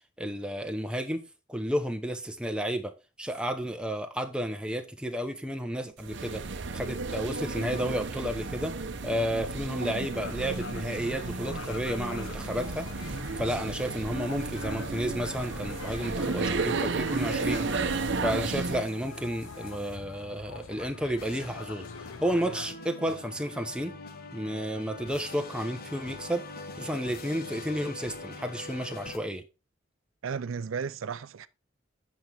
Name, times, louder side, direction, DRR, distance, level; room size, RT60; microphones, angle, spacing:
voice 1, 0.2-6.4 6.7-8.8 9.0-17.7 18.2-21.9 22.2-24.0 24.3-26.5 26.7-29.4, equal, 5° right, 0.8 m, -32 dB
sound 1, 6.0-18.9, right 3 dB, 60° right, 0.8 m, -33 dB
sound 2, 10.1-22.7, left 5 dB, 85° left, 0.6 m, -43 dB
sound 3, 21.2-29.2, left 3 dB, 50° left, 1.1 m, -43 dB
voice 2, 30.2-31.5, right 6 dB, 85° right, 0.5 m, -34 dB
8.1 x 6.2 x 3.4 m
head